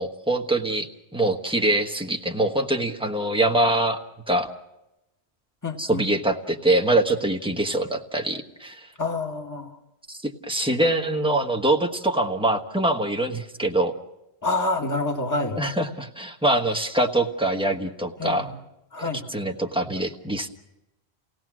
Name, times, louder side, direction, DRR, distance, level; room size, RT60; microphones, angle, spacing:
voice 1, 0.0-4.5 5.8-8.9 10.1-13.9 15.5-18.5 19.3-20.5, right 1 dB, 5° right, 2 dB, 1.3 m, -24 dB
voice 2, 5.6-6.1 9.0-9.7 14.4-15.6 18.2-18.6 18.9-19.2, left 2 dB, 15° left, 3 dB, 1.8 m, -27 dB
30.0 x 17.5 x 6.2 m, 0.94 s
omnidirectional pair, 1.1 m